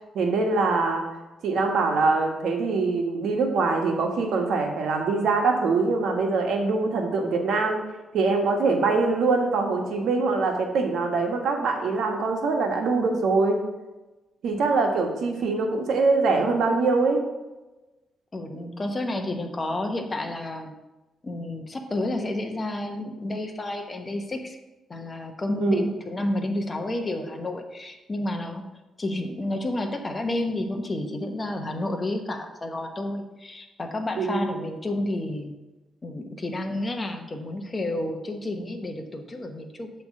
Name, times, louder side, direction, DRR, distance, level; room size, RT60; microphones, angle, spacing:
voice 1, 0.1-1.0 1.4-7.8 8.1-13.6 14.4-17.2 25.6-25.9 34.2-34.5, right 3 dB, 75° right, 2 dB, 1.3 m, -23 dB
voice 2, 18.3-20.7 21.2-24.6 24.9-28.6 29.0-35.5 36.0-39.9, left 1 dB, 30° left, 4 dB, 1.0 m, -30 dB
7.9 x 3.3 x 6.3 m, 1.1 s
cardioid pair, 90°, 0 cm